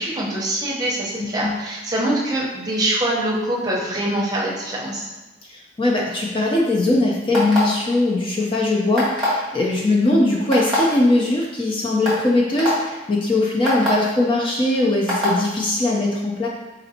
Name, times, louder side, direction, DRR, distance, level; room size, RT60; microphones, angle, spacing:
voice 1, 0.0-5.1, right 1 dB, 20° right, -5 dB, 0.7 m, -24 dB
voice 2, 1.2-1.5 5.5-16.5, left 2 dB, 25° left, -2 dB, 0.4 m, -20 dB
sound 1, 7.3-7.8 8.9-9.4 10.5-10.8 11.5-11.6 12.0-12.2 12.6-12.7 13.6-13.9 15.1-15.3, left 1 dB, ahead, 1.3 m, -22 dB
4.2 x 3.9 x 2.7 m, 1.1 s
head